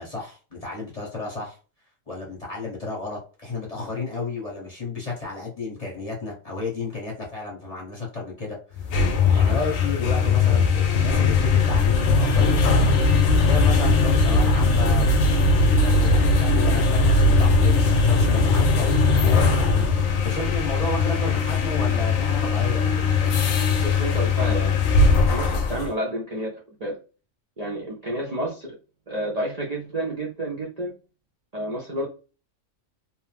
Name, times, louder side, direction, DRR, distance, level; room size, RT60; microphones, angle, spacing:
voice 1, 0.0-1.6 2.1-8.9 9.3-13.2 13.4-15.2 15.7-17.7 18.0-23.3, left 3 dB, 30° left, -3 dB, 1.0 m, -32 dB
sound 1, 8.8-25.9, left 3 dB, 80° left, 1.0 m, -19 dB
voice 2, 23.8-24.8 25.3-27.0 27.6-28.7 29.1-30.9 31.5-32.1, right 1 dB, 45° right, -4 dB, 0.5 m, -30 dB
2.9 x 2.0 x 3.2 m, 0.35 s
omnidirectional pair, 1.4 m